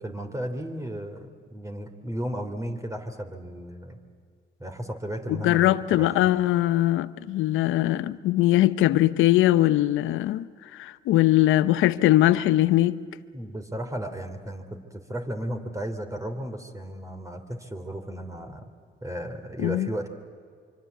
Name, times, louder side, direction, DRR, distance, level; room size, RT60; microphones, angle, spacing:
voice 1, 0.0-4.0 4.6-6.1 13.3-18.7 19.0-20.1, right 1 dB, 15° right, 3.2 m, -34 dB
voice 2, 5.3-13.0 19.6-19.9, left 15 dB, 85° left, 0.8 m, -21 dB
25.0 x 25.0 x 8.3 m
cardioid pair, 70°, 20 cm